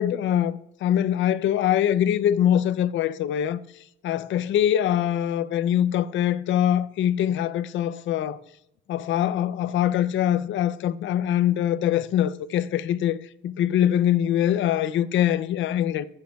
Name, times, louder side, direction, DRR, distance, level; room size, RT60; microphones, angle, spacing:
voice 1, 0.0-3.6 4.0-8.4 8.9-16.1, left 10 dB, 70° left, 0.5 m, -23 dB
15.5 x 7.3 x 2.3 m
cardioid pair, 90°, 20 cm